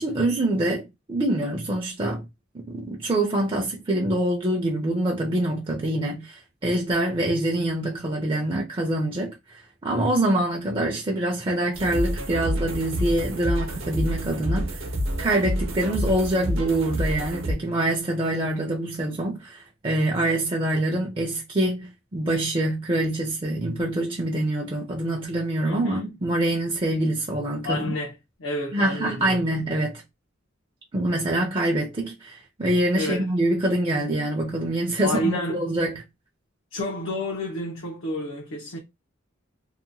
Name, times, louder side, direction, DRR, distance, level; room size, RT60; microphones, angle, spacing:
voice 1, 0.0-2.3 2.5-14.8 15.2-27.9 28.7-30.0 30.9-36.0, right 1 dB, 25° right, 0.5 m, -25 dB
sound 1, 11.7-17.5, equal, 75° right, 0.8 m, -28 dB
voice 2, 25.6-26.1 27.6-28.1 28.4-29.6 33.0-33.3 35.0-35.7 36.7-38.8, left 1 dB, 75° left, 0.7 m, -30 dB
2.8 x 2.2 x 2.6 m
head